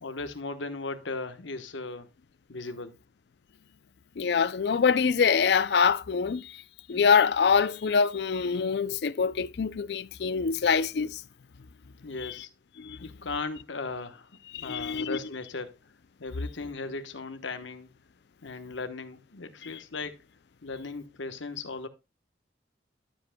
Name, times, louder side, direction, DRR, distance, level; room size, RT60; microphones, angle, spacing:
voice 1, 0.0-2.1 2.5-3.0 12.0-12.5 13.0-15.8 16.2-17.9 18.4-20.2 20.6-21.9, left 3 dB, 85° left, 1.1 m, -37 dB
voice 2, 4.2-6.6 6.9-11.2 12.2-12.4 12.8-13.1 14.5-15.2 19.6-19.8, left 6 dB, 60° left, 0.4 m, -25 dB
12.5 x 7.7 x 2.2 m
head